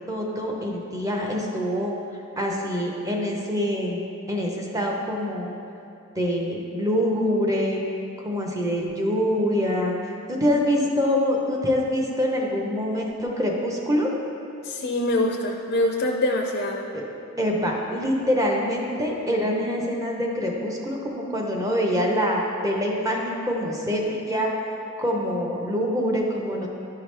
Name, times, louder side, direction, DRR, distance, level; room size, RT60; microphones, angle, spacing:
voice 1, 0.1-1.9 2.4-5.5 6.2-7.8 8.2-14.1 16.9-17.0 17.4-24.5 25.0-26.7, equal, 15° right, -1 dB, 0.7 m, -25 dB
voice 2, 14.6-16.9, left 1 dB, 45° left, 1 dB, 0.4 m, -24 dB
11.0 x 4.7 x 3.3 m, 2.7 s
head